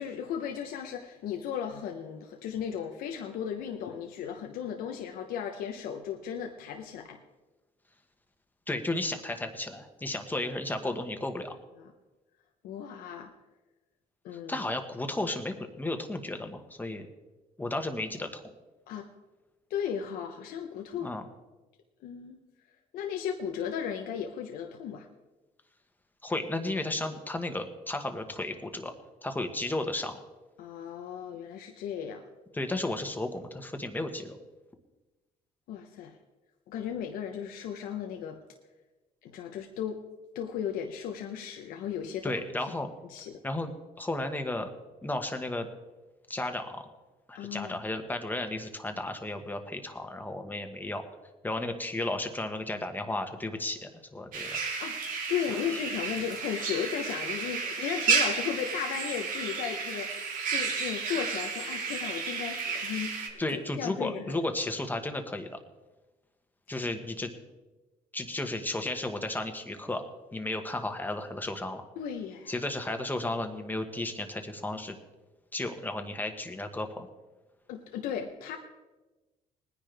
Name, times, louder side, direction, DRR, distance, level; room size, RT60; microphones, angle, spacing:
voice 1, 0.0-7.2 11.8-11.9 12.6-13.3 14.2-14.6 18.9-19.1 19.7-21.1 22.0-22.4 22.9-25.1 30.6-32.2 35.7-36.2 36.7-38.4 39.2-40.0 40.3-42.4 43.1-43.4 47.3-47.7 54.5-60.1 60.5-64.4 72.0-72.6 77.7-78.6, left 8 dB, 80° left, 4 dB, 1.0 m, -35 dB
voice 2, 8.7-11.5 14.3-17.1 17.6-18.4 21.0-21.3 26.2-28.9 29.2-30.2 32.5-34.4 42.2-42.9 43.4-43.7 44.0-44.7 45.0-45.7 46.3-46.9 47.3-51.0 51.4-54.6 63.4-65.6 66.7-67.3 68.1-70.0 70.3-71.8 72.5-75.0 75.5-77.1, left 2 dB, 10° left, 6 dB, 1.5 m, -33 dB
sound 1, 54.3-63.3, right 5 dB, 65° right, 2.0 m, -32 dB
20.0 x 10.0 x 3.5 m, 1.1 s
cardioid pair, 95°, 15 cm